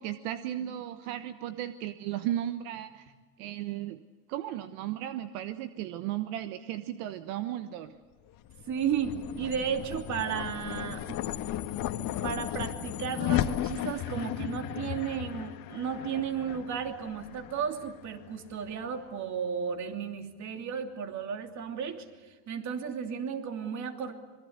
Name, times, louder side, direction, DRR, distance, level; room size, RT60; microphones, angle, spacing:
voice 1, 0.0-3.1 3.4-4.0 4.3-8.0, right 12 dB, 75° right, 10 dB, 1.3 m, -35 dB
sound 1, 8.3-18.9, left 12 dB, 50° left, 1.7 m, -35 dB
voice 2, 8.7-11.2 12.2-24.1, right 7 dB, 40° right, 6 dB, 3.0 m, -34 dB
26.5 x 22.0 x 8.1 m, 1.3 s
supercardioid pair, 130°, 43 cm